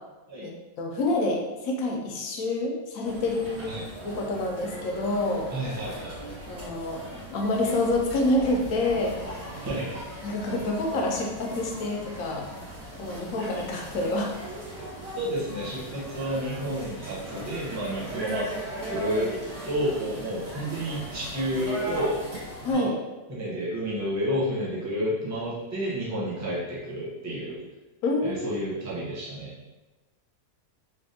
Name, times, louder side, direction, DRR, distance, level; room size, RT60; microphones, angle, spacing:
voice 1, 0.8-5.5 6.5-9.5 10.2-12.4 13.0-14.3 22.6-22.9 28.0-28.6, left 2 dB, 75° left, 1 dB, 1.0 m, -27 dB
sound 1, 3.0-22.7, right 1 dB, 55° right, 1.4 m, -39 dB
voice 2, 5.5-6.2 9.6-10.0 15.2-19.3 19.6-22.2 22.7-22.9 23.3-27.6 28.2-29.6, equal, 20° right, -6 dB, 0.5 m, -30 dB
3.4 x 2.5 x 2.7 m, 1.1 s
omnidirectional pair, 1.6 m